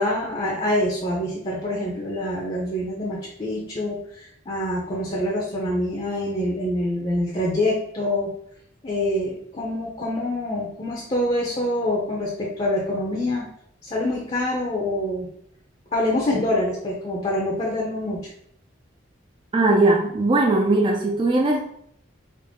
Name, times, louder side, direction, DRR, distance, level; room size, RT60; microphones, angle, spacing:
voice 1, 0.0-8.3 8.8-13.5 13.8-15.3 15.9-18.3, left 1 dB, 30° left, -3 dB, 0.6 m, -25 dB
voice 2, 19.5-21.6, right 2 dB, 25° right, 1 dB, 0.4 m, -19 dB
3.7 x 2.1 x 3.5 m, 0.68 s
head